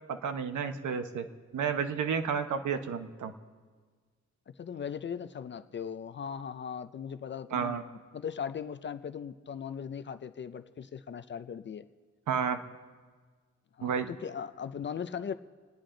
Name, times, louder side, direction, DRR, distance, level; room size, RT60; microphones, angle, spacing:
voice 1, 0.1-1.2 1.5-3.3 7.5-7.8 12.3-12.6 13.8-14.1, right 7 dB, 85° right, 7 dB, 1.1 m, -31 dB
voice 2, 4.5-7.8 8.1-11.9 13.8-15.3, left 7 dB, 40° left, 11 dB, 0.5 m, -38 dB
29.5 x 10.0 x 3.8 m, 1.5 s
wide cardioid pair, 165°, 29 cm